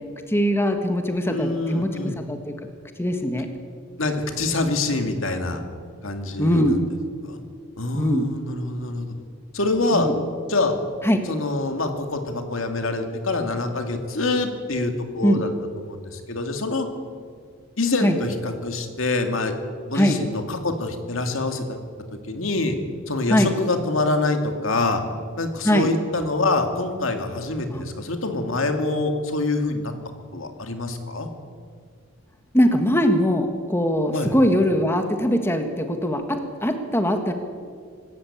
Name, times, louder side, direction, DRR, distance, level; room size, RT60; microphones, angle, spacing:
voice 1, 0.3-2.5 3.0-3.5 6.4-6.8 7.9-8.3 9.9-10.1 11.0-11.2 15.2-15.4 18.0-18.1 19.9-20.2 23.3-23.5 25.6-25.9 27.7-27.8 32.5-37.3, equal, 10° left, 5 dB, 1.5 m, -21 dB
voice 2, 1.3-2.2 4.0-5.6 6.0-6.8 7.2-7.4 7.8-9.1 9.5-10.1 10.5-10.7 11.2-15.5 15.8-16.9 17.8-19.5 19.9-21.8 22.2-22.8 23.1-25.0 25.4-29.9 30.3-31.3 34.1-34.4, left 2 dB, 70° left, 5 dB, 2.4 m, -25 dB
25.5 x 14.0 x 8.6 m, 2.1 s
head